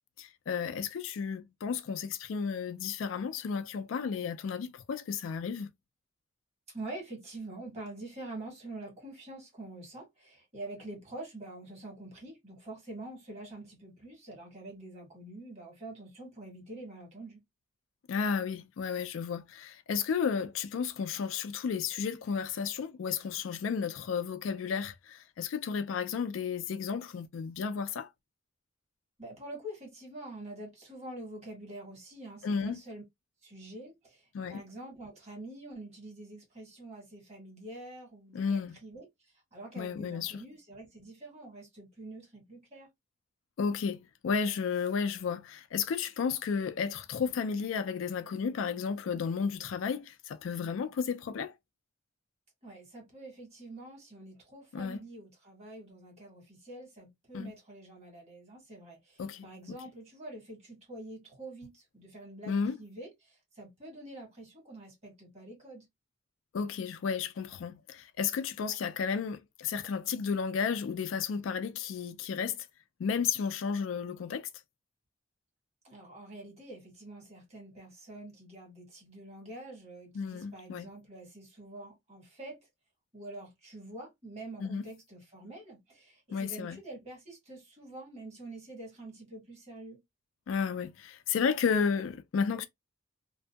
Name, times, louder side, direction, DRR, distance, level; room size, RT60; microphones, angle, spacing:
voice 1, 0.2-5.7 18.1-28.1 32.4-32.8 34.3-34.6 38.3-38.8 39.8-40.4 43.6-51.5 54.7-55.0 57.3-57.5 59.2-59.8 62.5-62.8 66.5-72.7 73.0-74.5 80.1-80.9 84.6-84.8 86.3-86.8 90.5-92.7, left 6 dB, 80° left, 0.4 m, -33 dB
voice 2, 6.7-17.4 29.2-33.0 33.4-42.9 52.6-65.8 75.8-82.6 83.1-90.0, right 2 dB, 35° right, 1.5 m, -46 dB
2.7 x 2.5 x 2.3 m
head